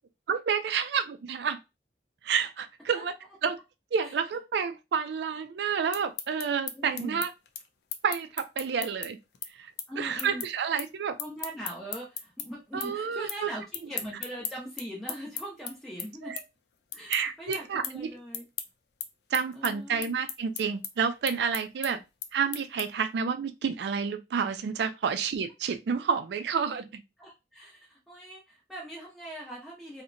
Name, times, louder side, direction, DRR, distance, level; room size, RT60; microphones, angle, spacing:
voice 1, 0.3-1.6 2.2-3.2 3.4-3.6 3.9-7.3 8.0-9.2 9.6-9.7 10.0-11.1 12.7-13.5 16.2-16.4 17.1-18.1 19.3-22.0 22.3-27.0, right 6 dB, 75° right, 0.3 m, -29 dB
sound 1, 5.7-12.5 12.8-13.4 13.7-23.1, left 9 dB, 70° left, 0.4 m, -37 dB
voice 2, 6.7-7.2 9.9-10.4 11.2-16.3 16.9-18.4 19.5-20.1 21.8-22.0 27.2-30.0, right 1 dB, ahead, 0.5 m, -41 dB
2.7 x 2.1 x 2.5 m
head